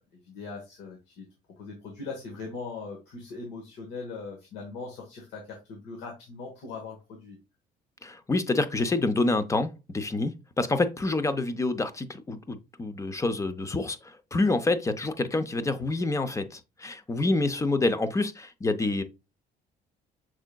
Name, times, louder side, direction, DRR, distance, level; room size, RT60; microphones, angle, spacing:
voice 1, 0.2-1.3 1.6-7.4, left 4 dB, 85° left, 1.3 m, -40 dB
voice 2, 8.0-19.0, left 2 dB, 20° left, 0.5 m, -27 dB
6.1 x 3.6 x 2.2 m
cardioid pair, 110°, 17 cm